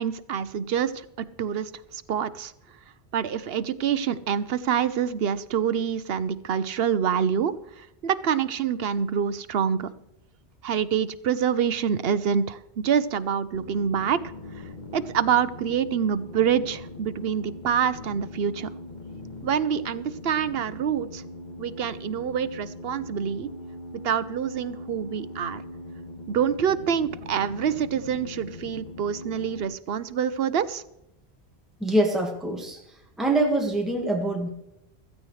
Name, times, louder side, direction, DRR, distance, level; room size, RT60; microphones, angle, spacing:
voice 1, 0.0-2.5 3.1-9.9 10.6-14.2 14.9-18.7 19.4-21.2 21.6-23.5 24.0-25.6 26.3-30.8, right 8 dB, 70° right, 14 dB, 0.9 m, -26 dB
sound 1, 13.5-29.7, left 1 dB, 45° left, 1.8 m, -41 dB
voice 2, 31.8-32.8 33.2-34.5, right 1 dB, ahead, 1 dB, 1.6 m, -24 dB
16.0 x 14.0 x 3.2 m, 0.86 s
omnidirectional pair, 1.1 m